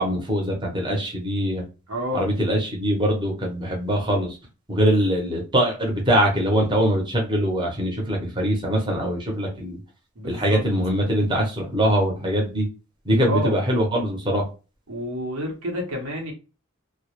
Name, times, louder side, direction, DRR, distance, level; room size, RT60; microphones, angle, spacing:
voice 1, 0.0-1.6 2.1-4.4 4.7-9.8 10.2-12.7 13.1-14.4, equal, 20° right, 0 dB, 0.6 m, -22 dB
voice 2, 1.9-2.3 10.2-10.6 13.2-13.5 14.9-16.3, equal, 90° right, 1 dB, 0.8 m, -29 dB
2.2 x 2.0 x 2.9 m, 0.32 s
head